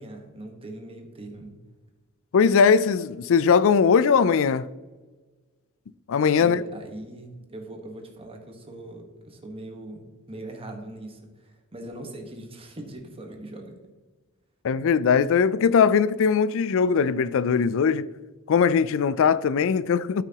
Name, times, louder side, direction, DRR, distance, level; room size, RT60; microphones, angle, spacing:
voice 1, 0.0-1.5 6.4-13.7, right 1 dB, 25° right, 1.3 m, -40 dB
voice 2, 2.3-4.7 6.1-6.6 14.6-18.1 18.5-20.2, left 6 dB, 65° left, 0.4 m, -20 dB
12.0 x 6.0 x 2.9 m
head